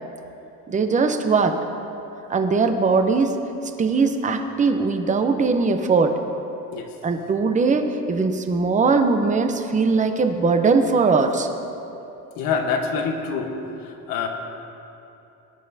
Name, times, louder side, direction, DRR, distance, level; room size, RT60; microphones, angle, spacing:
voice 1, 0.7-1.6 2.3-3.3 3.8-6.1 7.0-11.5, right 4 dB, 20° right, 6 dB, 0.7 m, -20 dB
voice 2, 12.3-13.5 13.8-14.3, left 5 dB, 75° left, 3 dB, 1.4 m, -26 dB
19.5 x 11.0 x 2.7 m, 2.9 s
cardioid pair, 140°, 34 cm